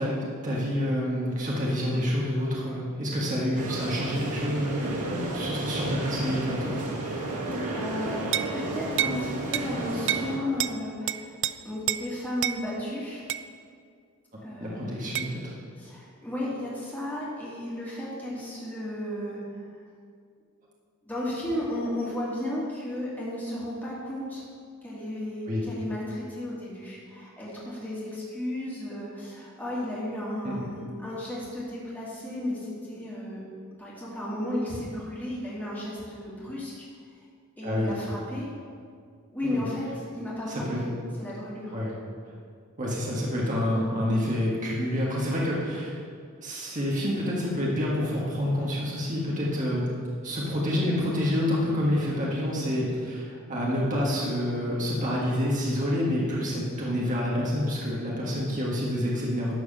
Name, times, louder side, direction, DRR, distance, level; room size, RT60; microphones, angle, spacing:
voice 1, 0.0-6.8 14.6-15.6 25.5-25.6 30.4-30.7 37.6-37.9 39.4-39.7 40.5-40.8 41.7-41.9 42.8-46.0 46.4-49.8 50.2-59.5, equal, 35° right, -5 dB, 1.7 m, -28 dB
sound 1, 3.5-10.4, right 2 dB, 90° right, 1.9 m, -32 dB
voice 2, 7.0-11.3 11.6-13.2 14.4-15.1 15.8-19.8 21.0-24.5 24.8-33.4 33.8-36.9 37.6-38.5 39.3-39.9 40.1-40.9 41.2-41.8, left 1 dB, 10° left, -7 dB, 2.7 m, -34 dB
sound 2, 8.3-8.5 9.0-9.2 9.5-9.7 10.1-10.3 10.6-10.8 11.1-11.5 11.9-12.0 12.4-12.6 13.3-13.5 15.2-15.3, right 12 dB, 55° right, 0.4 m, -28 dB
12.0 x 4.8 x 7.4 m, 2.2 s
head